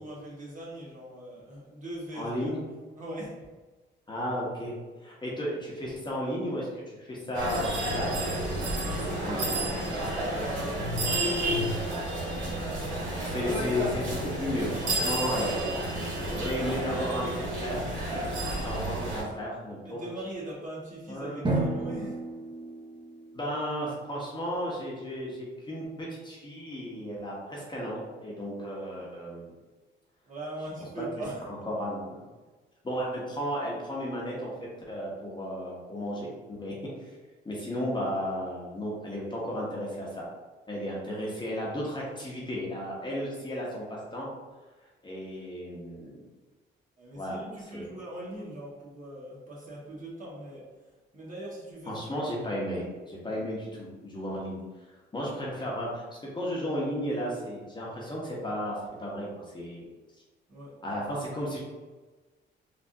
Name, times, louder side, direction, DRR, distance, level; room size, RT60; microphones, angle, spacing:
voice 1, 0.0-2.6 3.0-3.5 8.8-11.9 19.8-22.2 30.3-31.4 47.0-50.6 51.1-51.9 60.5-60.7, right 1 dB, 40° right, -6 dB, 1.3 m, -41 dB
voice 2, 2.1-2.6 4.1-4.8 5.0-8.3 8.6-9.7 13.3-15.6 16.2-17.9 18.6-20.0 21.1-21.4 23.3-29.5 31.5-32.3 32.8-34.5 34.9-37.1 37.4-40.3 40.7-44.3 45.0-46.2 47.2-47.9 51.9-54.6 55.1-56.0 56.3-59.8 60.8-61.6, equal, 25° left, -4 dB, 0.9 m, -34 dB
sound 1, 7.3-19.2, right 1 dB, 80° right, 1.2 m, -31 dB
Drum, 21.4-24.0, right 2 dB, 25° right, 0.8 m, -32 dB
3.4 x 2.5 x 2.6 m, 1.3 s
cardioid pair, 90°, 20 cm